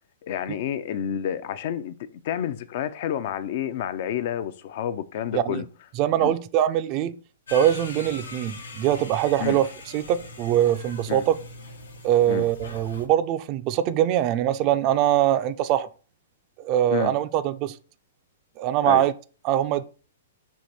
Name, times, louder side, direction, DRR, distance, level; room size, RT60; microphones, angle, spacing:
voice 1, 0.2-5.7 6.2-6.3 9.4-9.6 11.1-11.2 12.3-12.5 16.9-17.1 18.8-19.0, left 9 dB, 55° left, 0.4 m, -29 dB
voice 2, 5.3-5.6 6.0-7.1 7.5-9.7 9.9-11.4 12.0-15.9 16.6-17.8 18.6-19.1 19.4-19.8, right 11 dB, 40° right, 0.4 m, -22 dB
sound 1, 7.5-13.1, left 2 dB, 90° left, 0.9 m, -41 dB
4.6 x 2.6 x 4.1 m
hypercardioid pair, 125°, 0 cm